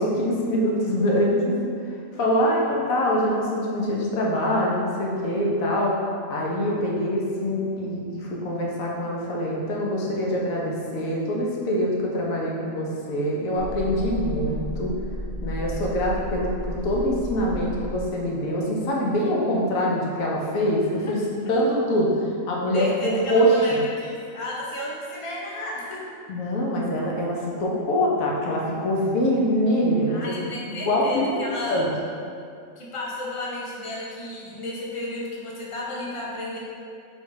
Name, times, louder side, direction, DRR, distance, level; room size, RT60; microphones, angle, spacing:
voice 1, 0.0-1.5 2.2-6.0 6.3-14.9 15.4-21.2 21.5-22.1 22.5-23.8 26.3-30.3 30.7-31.4 31.7-31.9, equal, 75° left, -3 dB, 1.2 m, -24 dB
sound 1, 13.6-18.6 19.0-19.1, equal, 60° left, 1.1 m, -33 dB
voice 2, 22.7-26.0 30.1-31.9 32.8-36.6, left 2 dB, 35° left, -4 dB, 0.5 m, -33 dB
4.3 x 2.4 x 4.8 m, 2.4 s
omnidirectional pair, 1.5 m